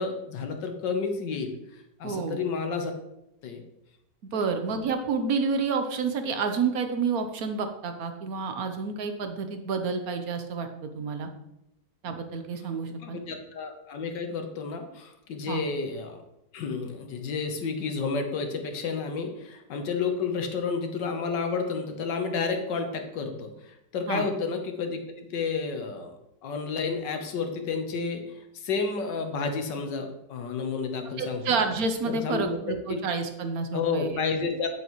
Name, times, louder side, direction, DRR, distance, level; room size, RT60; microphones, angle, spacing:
voice 1, 0.0-2.9 3.4-3.7 4.3-4.4 13.0-16.2 16.5-26.1 26.4-28.2 28.5-31.6 32.0-33.0 33.7-34.7, left 4 dB, 80° left, 5 dB, 1.7 m, -31 dB
voice 2, 2.0-2.4 4.2-11.3 12.0-13.2 15.5-15.6 24.1-24.3 31.2-34.1, right 5 dB, 60° right, 7 dB, 1.3 m, -29 dB
9.0 x 8.2 x 3.1 m, 0.85 s
omnidirectional pair, 1.9 m